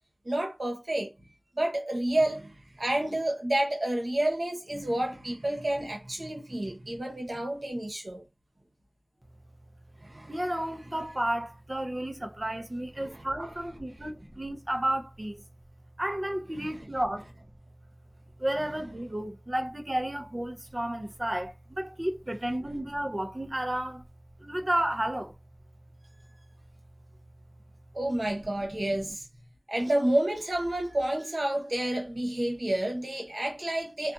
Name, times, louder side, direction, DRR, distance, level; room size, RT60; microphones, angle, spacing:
voice 1, 0.2-1.1 1.6-8.2 10.0-10.4 13.0-13.2 16.6-16.8 27.9-29.3 29.7-34.1, right 1 dB, 85° right, 0.9 m, -30 dB
voice 2, 10.3-15.4 16.0-17.4 18.4-24.0 24.4-25.3, right 1 dB, 40° right, 0.6 m, -32 dB
2.5 x 2.2 x 2.6 m
wide cardioid pair, 45°, 0 cm